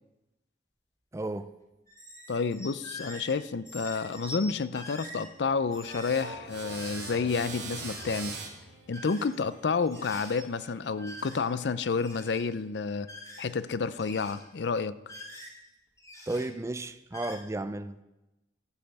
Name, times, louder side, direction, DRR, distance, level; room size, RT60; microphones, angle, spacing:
voice 1, 1.1-1.5 16.3-18.0, right 2 dB, 15° right, 0.4 m, -33 dB
sound 1, 1.9-3.4 3.6-4.5 4.7-5.3 5.7-6.3 6.8-7.2 7.7-8.3 8.9-9.6 9.8-10.4 11.0-11.6 11.9-12.5 13.0-13.7 14.0-14.5 15.0-15.7 16.0-16.5 17.1-17.4, left 1 dB, 20° left, 2.7 m, -45 dB
voice 2, 2.3-8.4 8.9-13.1 13.4-15.0, left 5 dB, 65° left, 0.5 m, -30 dB
sound 2, 5.0-9.5, right 1 dB, 50° right, 2.0 m, -50 dB
sound 3, 5.8-11.0, right 4 dB, 70° right, 2.3 m, -43 dB
12.5 x 5.5 x 7.9 m
head